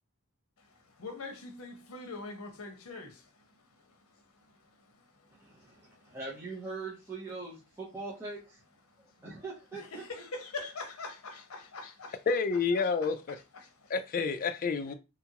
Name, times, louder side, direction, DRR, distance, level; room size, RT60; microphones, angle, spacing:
voice 1, 1.0-3.3 5.9-6.1 9.7-12.2 12.8-13.1 13.5-13.9, left 3 dB, 75° left, 0.7 m, -43 dB
voice 2, 5.4-8.6 9.2-10.2, right 3 dB, 10° right, 0.6 m, -42 dB
voice 3, 12.3-13.4 13.9-14.9, left 5 dB, 40° left, 0.3 m, -29 dB
2.9 x 2.4 x 2.8 m
head